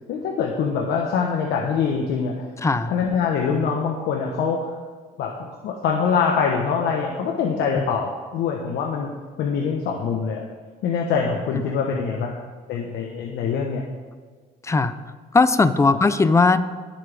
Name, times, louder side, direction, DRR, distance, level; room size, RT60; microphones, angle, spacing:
voice 1, 0.1-2.5 2.9-4.7 5.2-9.1 9.4-10.4 10.8-12.3 12.7-13.8 15.9-16.0, left 6 dB, 75° left, 0 dB, 1.2 m, -24 dB
voice 2, 2.6-2.9 7.7-7.8 14.6-14.9 15.3-16.6, left 3 dB, 15° left, 13 dB, 0.6 m, -18 dB
19.0 x 7.6 x 3.5 m, 1.5 s
cardioid pair, 110°, 17 cm